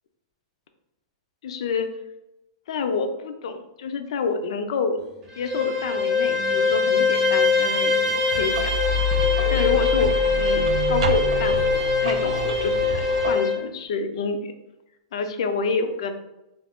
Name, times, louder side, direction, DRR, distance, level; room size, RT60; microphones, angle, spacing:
voice 1, 1.4-1.9 2.7-5.0 5.4-8.7 9.5-14.5 15.1-16.1, left 4 dB, 70° left, 7 dB, 0.4 m, -28 dB
sound 1, 5.0-8.2, right 1 dB, 25° left, 0.5 m, -44 dB
Bowed string instrument, 5.3-13.6, left 4 dB, 25° right, 0.6 m, -23 dB
sound 2, 8.3-13.3, left 1 dB, 85° right, 0.4 m, -27 dB
2.5 x 2.3 x 3.5 m, 0.92 s
hypercardioid pair, 150°, 3 cm